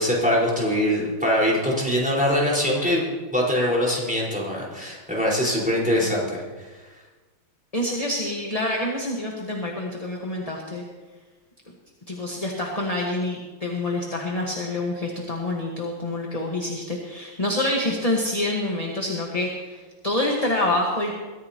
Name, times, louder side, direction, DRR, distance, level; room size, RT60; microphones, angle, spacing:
voice 1, 0.0-6.7, equal, 5° right, -5 dB, 4.6 m, -23 dB
voice 2, 7.7-10.8 12.1-21.1, left 1 dB, 20° left, -1 dB, 1.3 m, -27 dB
22.5 x 14.5 x 3.0 m, 1.3 s
omnidirectional pair, 2.4 m